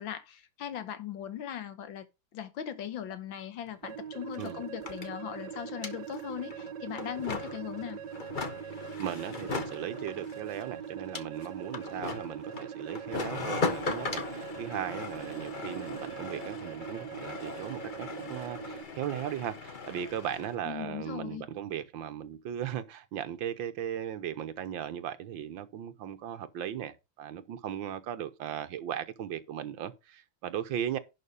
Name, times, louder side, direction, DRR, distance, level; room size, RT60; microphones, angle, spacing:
voice 1, 0.0-2.1 2.3-8.0 20.6-21.5, left 10 dB, 80° left, 1.8 m, -39 dB
sound 1, 3.7-3.8 3.9-20.6, left 4 dB, 35° left, 0.9 m, -39 dB
sound 2, 3.8-18.8, right 9 dB, 65° right, 1.4 m, -42 dB
voice 2, 9.0-31.0, right 10 dB, 80° right, 1.7 m, -37 dB
11.0 x 4.2 x 5.4 m
omnidirectional pair, 2.1 m